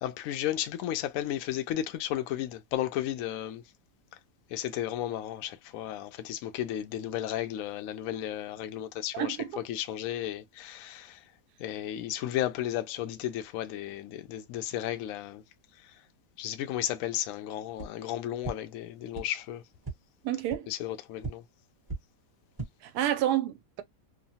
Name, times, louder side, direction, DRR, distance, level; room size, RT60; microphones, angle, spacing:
voice 1, 0.0-3.6 4.5-9.4 9.7-11.2 11.6-15.4 16.4-19.6 20.7-21.4, left 12 dB, 70° left, 0.9 m, -34 dB
voice 2, 9.1-9.6 20.2-20.7 22.8-23.8, right 12 dB, 80° right, 1.1 m, -29 dB
sound 1, 17.7-17.9 18.4-18.5 19.1-19.2 19.8-19.9 20.5-20.6 21.2-21.3 21.8-22.0 22.4-22.7, right 3 dB, 20° right, 0.7 m, -36 dB
3.0 x 2.1 x 2.7 m
omnidirectional pair, 1.7 m